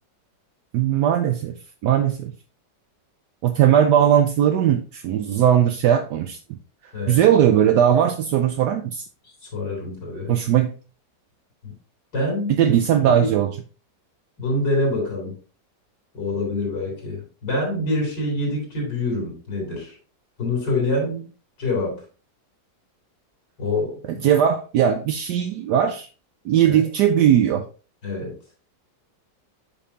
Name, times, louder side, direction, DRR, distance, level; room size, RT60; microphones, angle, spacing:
voice 1, 0.7-1.6 1.8-2.3 3.4-6.6 7.1-9.1 10.3-10.7 12.6-13.5 24.1-26.1 26.4-27.6, right 10 dB, 75° right, 1.2 m, -19 dB
voice 2, 6.9-7.2 9.4-10.4 11.6-11.7 12.1-12.7 13.2-13.3 14.4-15.3 16.1-20.0 20.4-21.2 21.6-22.0 23.6-24.2 26.6-26.8 28.0-28.4, left 2 dB, 85° left, 3.7 m, -26 dB
8.4 x 5.4 x 2.7 m
omnidirectional pair, 1.9 m